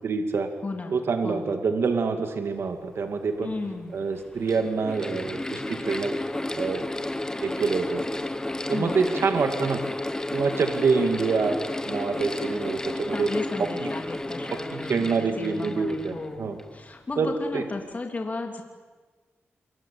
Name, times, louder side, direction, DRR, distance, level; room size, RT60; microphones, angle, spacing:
voice 1, 0.0-0.5 0.9-3.5 3.9-6.1 6.5-6.9 7.4-8.0 8.7-9.8 10.3-13.3 13.6-13.7 14.5-16.6 17.2-17.6, right 4 dB, 65° right, 6 dB, 2.4 m, -26 dB
voice 2, 0.6-1.0 1.2-1.5 3.4-4.0 8.7-9.2 12.6-12.7 13.1-18.6, left 3 dB, 35° left, 3 dB, 3.3 m, -34 dB
Mechanical fan, 3.2-3.3 4.1-16.8, left 1 dB, 15° left, 1.2 m, -32 dB
27.5 x 24.0 x 8.6 m, 1.4 s
wide cardioid pair, 105°, 5 cm